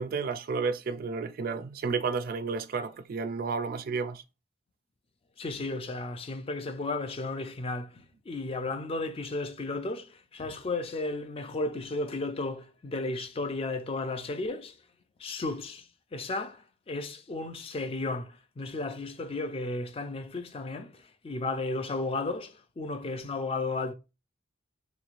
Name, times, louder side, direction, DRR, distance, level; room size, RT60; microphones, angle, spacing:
voice 1, 0.0-4.2, right 4 dB, 45° right, 0.3 m, -31 dB
voice 2, 5.4-14.8 15.2-23.9, left 2 dB, 30° left, 0.4 m, -34 dB
3.5 x 3.1 x 2.4 m
head